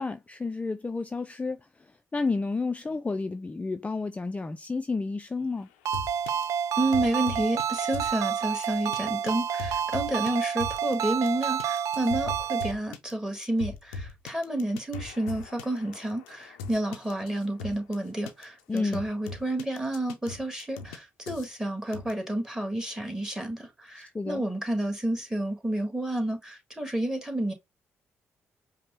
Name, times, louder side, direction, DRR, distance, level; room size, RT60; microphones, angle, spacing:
voice 1, 0.0-1.6 2.1-5.7 18.7-19.0 24.1-24.4, left 3 dB, 20° left, 0.4 m, -30 dB
sound 1, 5.9-6.4 6.9-7.6 7.9-8.1 8.6-9.0 9.3-9.4 9.6-10.9 11.3-18.0 18.3-18.4 18.8-21.0 21.3-21.5 21.9-22.1, left 4 dB, 90° left, 0.4 m, -39 dB
Ringtone, 5.9-12.7, right 8 dB, 65° right, 0.3 m, -29 dB
voice 2, 6.8-27.5, right 1 dB, 10° right, 1.5 m, -30 dB
5.2 x 2.1 x 2.9 m
hypercardioid pair, 45°, 6 cm